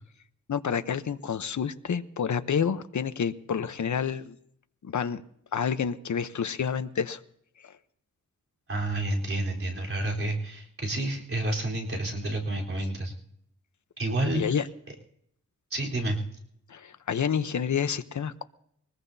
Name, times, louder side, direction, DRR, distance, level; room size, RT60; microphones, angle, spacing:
voice 1, 0.5-4.4 4.8-5.2 5.5-7.2 7.6-7.8 14.3-14.7 16.7-18.4, left 7 dB, 70° left, 11 dB, 0.9 m, -29 dB
voice 2, 8.7-13.1 14.0-14.4 15.7-16.2, right 1 dB, 45° right, -3 dB, 4.0 m, -29 dB
23.0 x 20.5 x 2.8 m, 0.70 s
wide cardioid pair, 135°, 31 cm